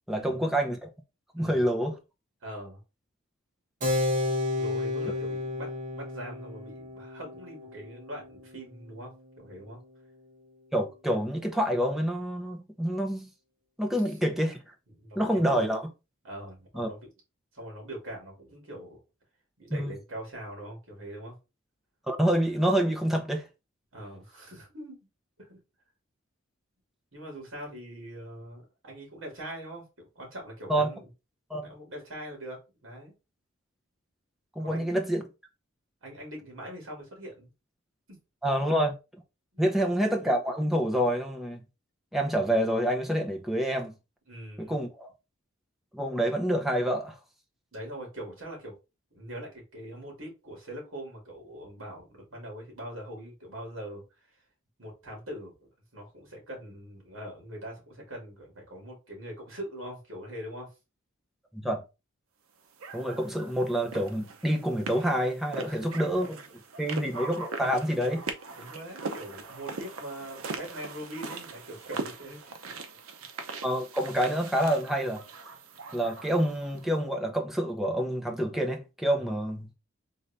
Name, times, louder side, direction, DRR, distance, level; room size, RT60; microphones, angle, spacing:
voice 1, 0.1-0.9 1.3-2.0 10.7-13.3 13.8-14.6 15.2-15.9 16.7-16.9 19.7-19.9 22.1-23.4 30.7-30.9 31.5-31.7 34.6-35.2 38.4-38.9 39.6-41.6 42.1-43.9 44.6-45.1 45.9-47.2 61.5-61.8 62.9-66.4 66.8-68.2 73.6-75.2 75.9-79.7, equal, ahead, 0.6 m, -27 dB
voice 2, 2.4-2.8 4.5-9.8 15.0-15.6 16.2-17.1 17.5-19.0 19.6-21.4 23.9-25.0 25.4-25.6 27.1-31.1 31.6-33.1 34.6-34.9 36.0-37.5 38.6-38.7 39.5-39.9 44.3-44.8 47.7-48.7 49.1-54.0 54.8-60.7 65.6-65.9 68.6-72.7 79.2-79.3, right 1 dB, 70° right, 2.2 m, -42 dB
Keyboard (musical), 3.8-9.9, left 2 dB, 40° right, 0.9 m, -32 dB
sound 1, 62.8-76.9, right 4 dB, 85° right, 0.6 m, -41 dB
3.9 x 2.6 x 3.3 m
head